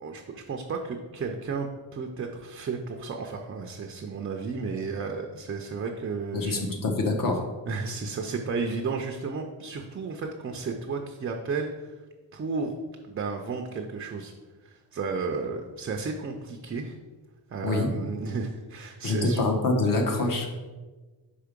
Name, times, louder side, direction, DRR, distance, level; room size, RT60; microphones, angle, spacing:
voice 1, 0.0-6.7 7.7-11.9 12.3-12.7 13.1-14.3 14.6-17.0 17.5-19.4, right 4 dB, 30° right, 3 dB, 0.4 m, -33 dB
voice 2, 6.3-7.5 17.6-17.9 19.0-20.5, left 2 dB, 50° left, 3 dB, 1.0 m, -25 dB
5.0 x 4.7 x 5.1 m, 1.3 s
wide cardioid pair, 170°, 44 cm